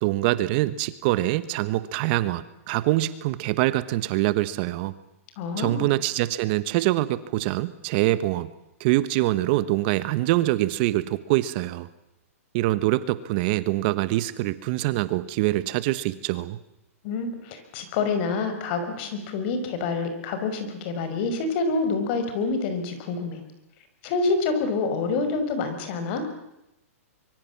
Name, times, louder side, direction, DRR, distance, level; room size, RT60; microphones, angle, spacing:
voice 1, 0.0-4.9 5.6-8.5 8.8-11.9 12.5-16.6, right 16 dB, 40° right, 15 dB, 1.2 m, -24 dB
voice 2, 5.4-5.9 17.0-23.4 24.0-26.3, left 4 dB, 45° left, 8 dB, 5.6 m, -27 dB
25.0 x 23.5 x 7.4 m, 0.88 s
hypercardioid pair, 145°, 8 cm